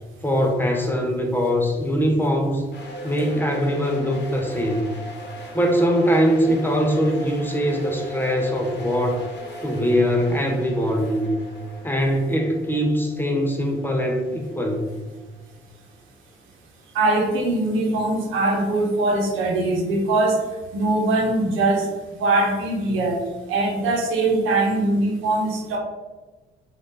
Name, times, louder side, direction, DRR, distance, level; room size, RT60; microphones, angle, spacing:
voice 1, 0.2-2.7 3.0-4.8 5.5-9.2 9.6-11.3 11.8-14.8, equal, 10° left, 1 dB, 0.5 m, -22 dB
sound 1, 2.7-15.6, right 1 dB, 60° left, 0.8 m, -39 dB
voice 2, 16.9-20.4 20.7-23.2 23.5-25.8, right 2 dB, 90° right, -1 dB, 0.8 m, -22 dB
2.6 x 2.4 x 3.6 m, 1.2 s
cardioid pair, 90°, 20 cm